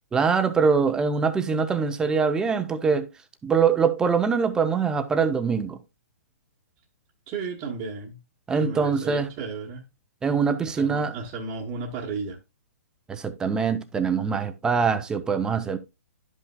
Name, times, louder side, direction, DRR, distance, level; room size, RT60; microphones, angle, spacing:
voice 1, 0.1-3.1 3.4-5.8 8.5-9.3 10.2-11.1 13.1-15.8, right 5 dB, 10° right, 0.5 m, -23 dB
voice 2, 7.3-8.2 8.5-9.8 10.7-12.4, right 4 dB, 25° right, 1.1 m, -34 dB
11.5 x 5.5 x 2.2 m
hypercardioid pair, 150°, 9 cm